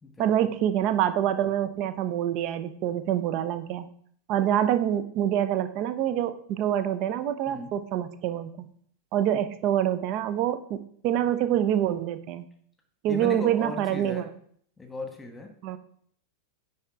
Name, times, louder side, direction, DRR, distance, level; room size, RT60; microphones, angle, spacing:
voice 1, 0.2-3.9 4.3-8.7 9.1-12.4 13.0-14.2 15.6-15.8, right 11 dB, 40° right, 12 dB, 0.7 m, -26 dB
voice 2, 13.1-14.3 14.8-15.5, left 2 dB, 10° left, 4 dB, 1.5 m, -37 dB
9.8 x 4.3 x 3.7 m, 0.62 s
figure-of-eight pair, 90°, 0 cm